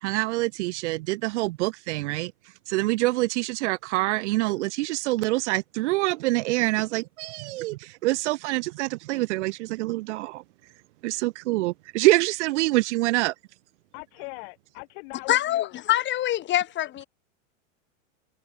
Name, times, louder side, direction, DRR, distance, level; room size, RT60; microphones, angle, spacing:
voice 1, 0.0-2.3 2.7-10.4 11.0-13.3, right 20 dB, 65° right, 4.6 m, -26 dB
voice 2, 13.9-15.7, left 37 dB, 50° left, 6.0 m, -40 dB
voice 3, 15.3-17.0, left 13 dB, 30° left, 3.4 m, -24 dB
supercardioid pair, 145°, 38 cm